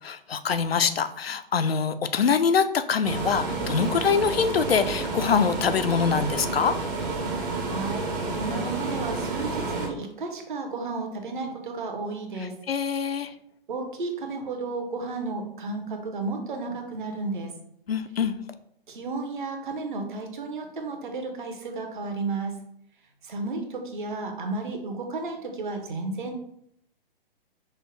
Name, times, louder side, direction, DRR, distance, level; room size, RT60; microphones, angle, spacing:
voice 1, 0.0-6.7 12.7-13.3 17.9-18.4, left 6 dB, 85° left, 10 dB, 0.5 m, -24 dB
sound 1, 3.0-9.9, right 3 dB, 20° right, 0.5 m, -30 dB
voice 2, 7.6-12.5 13.7-17.5 18.9-22.5 23.2-26.4, right 3 dB, 55° right, 4 dB, 0.8 m, -33 dB
5.4 x 2.1 x 3.1 m, 0.71 s
figure-of-eight pair, 125°, 29 cm